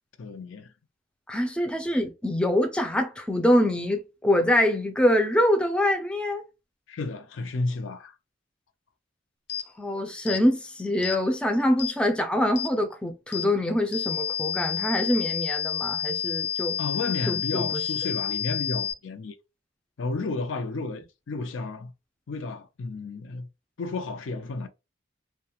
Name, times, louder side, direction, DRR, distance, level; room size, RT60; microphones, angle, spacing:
voice 1, 0.2-0.7 6.9-8.1 16.8-19.4 20.0-21.9 22.3-23.5 23.8-24.7, left 3 dB, 75° left, 0.5 m, -32 dB
voice 2, 1.3-6.4 9.8-16.8 17.3-17.8, left 1 dB, 5° left, 0.3 m, -24 dB
sound 1, 9.5-9.7 10.3-10.4 11.0-11.2 11.8-12.0 12.6-12.7 13.3-13.5 13.9-18.9, left 9 dB, 55° left, 0.8 m, -30 dB
2.4 x 2.2 x 2.8 m
head